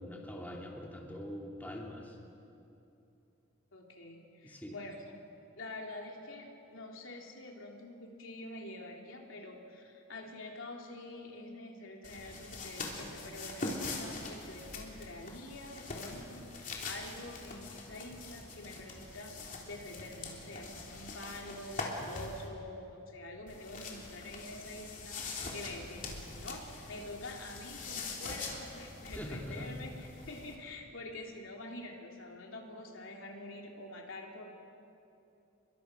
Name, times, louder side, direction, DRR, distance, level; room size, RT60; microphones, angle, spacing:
voice 1, 0.0-2.2 4.4-4.8 29.1-29.7, equal, 10° left, -1 dB, 2.6 m, -43 dB
voice 2, 3.7-4.9 5.6-34.5, left 2 dB, 85° left, 1 dB, 3.1 m, -46 dB
sound 1, 12.0-22.5 23.5-30.5, left 3 dB, 40° left, 3.4 m, -43 dB
29.5 x 22.5 x 6.2 m, 2.8 s
head